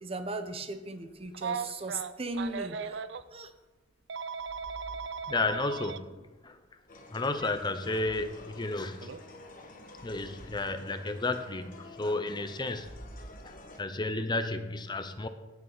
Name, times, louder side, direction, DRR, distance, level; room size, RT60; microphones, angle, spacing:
voice 1, 0.0-3.0 3.3-3.5, right 2 dB, 30° right, 9 dB, 0.8 m, -37 dB
Telephone, 1.3-3.2 4.1-6.0 7.3-7.5 9.0-9.2, right 6 dB, 70° right, 0.5 m, -37 dB
sound 1, 2.3-2.8 4.3-5.9 7.9-8.5 9.9-10.7 12.6-14.0, right 1 dB, 50° right, 1.9 m, -51 dB
voice 2, 5.3-6.6 7.1-9.1 10.0-12.9 13.4-15.3, left 2 dB, 25° left, 9 dB, 0.7 m, -32 dB
sound 2, 6.9-13.8, left 2 dB, 50° left, 1.4 m, -50 dB
17.5 x 7.1 x 4.0 m, 1.1 s
head